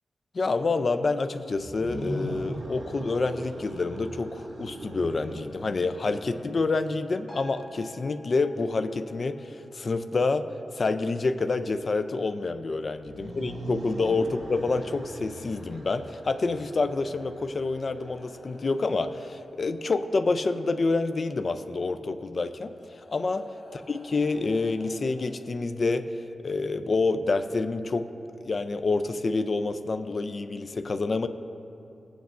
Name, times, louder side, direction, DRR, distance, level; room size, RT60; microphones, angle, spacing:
voice 1, 0.3-10.5 10.7-22.7 23.1-23.5 23.7-26.1 26.4-28.1 28.3-31.3, left 3 dB, 45° left, 9 dB, 0.4 m, -28 dB
sound 1, 1.5-6.7 12.9-18.6, right 1 dB, 55° right, 1.8 m, -39 dB
sound 2, 7.3-14.2 14.6-14.7, equal, 15° left, 1.1 m, -52 dB
sound 3, 18.2-20.3 21.7-21.8 22.5-26.1 27.2-27.3, left 2 dB, 70° left, 1.3 m, -53 dB
16.0 x 8.0 x 2.5 m, 2.8 s
wide cardioid pair, 110°, 0 cm